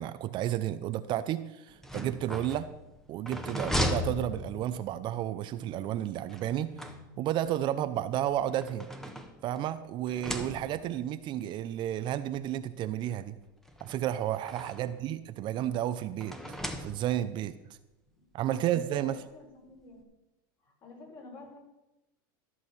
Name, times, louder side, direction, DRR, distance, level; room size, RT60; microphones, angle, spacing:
voice 1, 0.0-2.7 3.1-6.7 7.2-8.9 9.4-13.4 13.8-16.4 16.8-17.5 18.3-19.2, right 12 dB, 45° right, 12 dB, 0.6 m, -32 dB
sound 1, 1.7-5.0 6.3-7.5 8.3-9.7 10.1-11.0 11.9-12.0 12.4-12.5 13.7-15.0 16.2-17.4, left 1 dB, 5° left, 1.1 m, -37 dB
sound 2, 3.9-8.3, left 3 dB, 20° left, 3.4 m, -54 dB
voice 2, 18.1-20.1 20.6-21.6, left 3 dB, 40° left, 0 dB, 4.5 m, -50 dB
13.0 x 6.3 x 5.6 m, 0.96 s
supercardioid pair, 110°, 11 cm